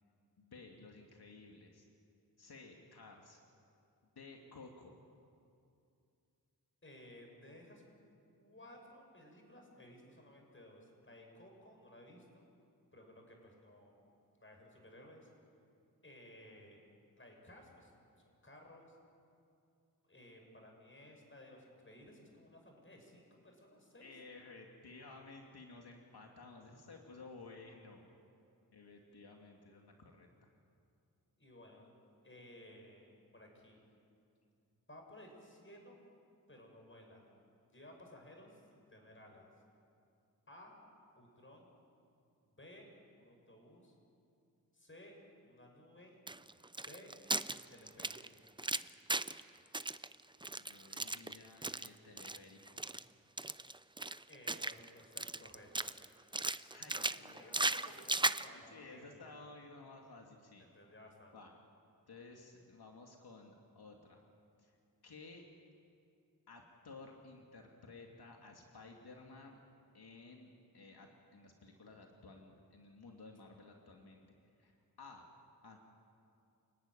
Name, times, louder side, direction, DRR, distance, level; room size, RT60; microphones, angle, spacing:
voice 1, 0.4-1.9 2.4-3.4 4.2-5.0 24.0-28.1 28.7-30.3 50.5-52.8 56.7-60.7 61.3-61.5 62.1-64.2 64.6-64.7 65.0-65.4 66.5-69.6 69.9-74.2 74.6-74.7 75.0-75.3 75.6-75.8, left 3 dB, 85° left, 1 dB, 2.5 m, -55 dB
voice 2, 6.8-7.8 8.3-12.5 12.9-14.0 14.3-15.3 16.0-16.8 17.1-17.9 18.2-18.9 20.1-24.1 29.1-29.2 31.4-32.0 32.2-33.8 34.9-36.0 36.5-37.3 37.7-39.5 40.5-40.8 41.1-41.7 42.4-42.9 43.2-43.9 44.7-45.2 45.4-46.2 46.8-47.2 47.5-48.2 53.6-53.8 54.3-55.9 57.4-59.3 60.6-61.4, left 1 dB, 30° left, 2 dB, 6.7 m, -57 dB
sound 1, 46.3-49.4 49.7-51.9 52.2-52.4 52.7-53.0 53.4-54.9 55.2-56.0 56.3-58.5, right 2 dB, 15° right, 0.6 m, -37 dB
29.0 x 17.5 x 10.0 m, 2.5 s
wide cardioid pair, 75°, 38 cm